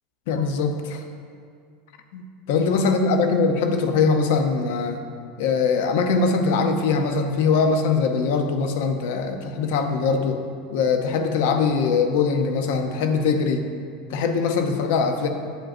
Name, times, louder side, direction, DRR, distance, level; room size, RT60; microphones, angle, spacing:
voice 1, 0.3-1.0 2.1-5.0 5.4-10.4 10.7-13.6 14.1-15.3, left 4 dB, 70° left, 6 dB, 0.6 m, -22 dB
8.8 x 4.9 x 2.5 m, 2.2 s
supercardioid pair, 145°, 0 cm